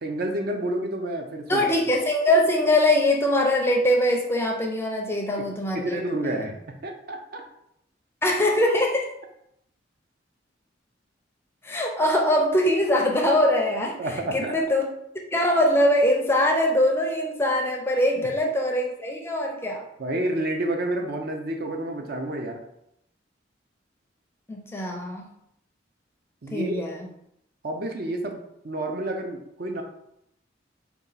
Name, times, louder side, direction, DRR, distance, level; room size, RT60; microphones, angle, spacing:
voice 1, 0.0-1.7 5.4-5.5 5.7-7.4 14.0-14.5 20.0-22.6 26.4-26.8 27.6-29.8, right 1 dB, 55° right, 3 dB, 0.5 m, -29 dB
voice 2, 1.5-6.4 8.2-9.1 11.6-14.0 14.3-14.8 15.3-19.8 24.5-25.3 26.5-27.1, left 1 dB, 15° left, 1 dB, 0.5 m, -22 dB
4.1 x 2.3 x 4.0 m, 0.78 s
head